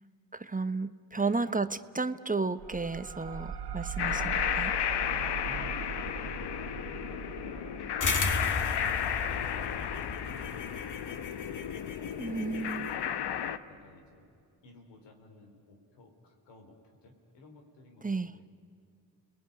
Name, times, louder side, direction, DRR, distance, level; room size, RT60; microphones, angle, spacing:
voice 1, 0.3-4.7 12.2-12.9 18.0-18.3, right 3 dB, 20° right, 12 dB, 1.0 m, -33 dB
sound 1, 2.6-11.8, right 8 dB, 70° right, 1.6 m, -42 dB
sound 2, 4.0-13.6, left 9 dB, 70° left, 1.1 m, -33 dB
voice 2, 5.1-6.4 7.2-7.9 8.3-11.0 13.6-14.4 14.6-18.5, left 2 dB, 90° left, 3 dB, 3.8 m, -54 dB
sound 3, 8.0-12.9, left 4 dB, 45° left, 1.7 m, -35 dB
30.0 x 20.0 x 9.9 m, 2.3 s
supercardioid pair, 50°, 41 cm